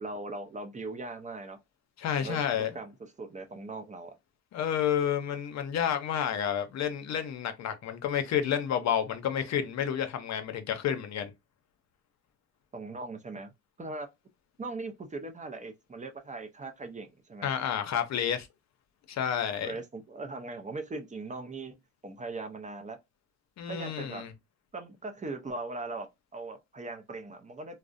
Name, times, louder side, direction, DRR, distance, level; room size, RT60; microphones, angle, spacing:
voice 1, 0.0-1.6 2.2-4.1 12.7-13.5 13.8-14.1 14.6-17.5 19.6-21.8 22.0-23.0 23.7-24.2 24.7-27.8, right 3 dB, 25° right, 0.5 m, -40 dB
voice 2, 2.0-2.7 4.5-11.3 17.4-18.5 19.1-19.8 23.6-24.3, left 9 dB, 60° left, 0.6 m, -30 dB
2.5 x 2.0 x 2.4 m
cardioid pair, 90°, 30 cm